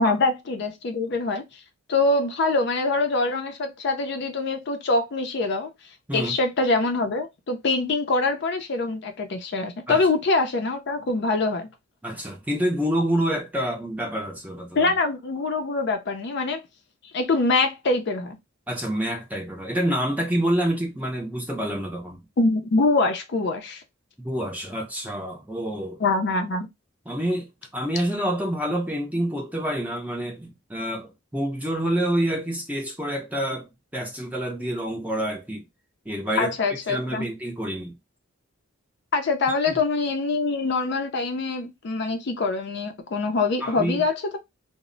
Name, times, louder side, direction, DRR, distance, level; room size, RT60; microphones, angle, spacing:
voice 1, 0.0-1.6 1.9-5.7 6.1-11.7 14.7-16.6 17.1-18.4 22.4-23.8 26.0-26.7 36.4-37.3 39.1-44.4, left 3 dB, 50° left, 0.4 m, -24 dB
voice 2, 12.0-14.9 18.7-22.2 24.2-26.0 27.1-27.5 27.7-35.6 36.1-36.5 36.9-37.9 39.7-39.8 43.6-44.0, right 1 dB, 5° right, 0.5 m, -27 dB
2.0 x 2.0 x 3.7 m
head